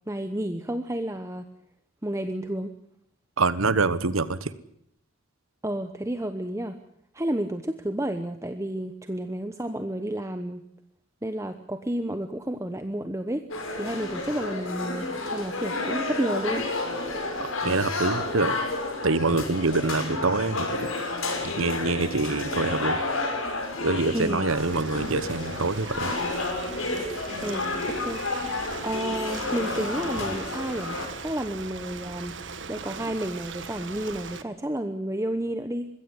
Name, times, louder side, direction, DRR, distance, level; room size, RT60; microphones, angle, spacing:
voice 1, 0.0-1.5 2.0-2.8 5.6-6.8 7.1-10.6 11.2-13.5 13.7-16.7 24.1-24.5 27.4-28.2 28.8-32.3 32.7-35.9, right 1 dB, 15° right, 8 dB, 0.9 m, -31 dB
voice 2, 3.4-4.5 17.6-18.6 19.0-20.9 21.4-23.0 23.8-26.1, right 3 dB, 85° right, 15 dB, 1.2 m, -25 dB
sound 1, 13.5-31.1, left 2 dB, 85° left, 6.2 m, -31 dB
Ocean, 24.6-34.4, right 4 dB, 65° right, 1.6 m, -39 dB
22.0 x 16.0 x 9.7 m, 0.71 s
head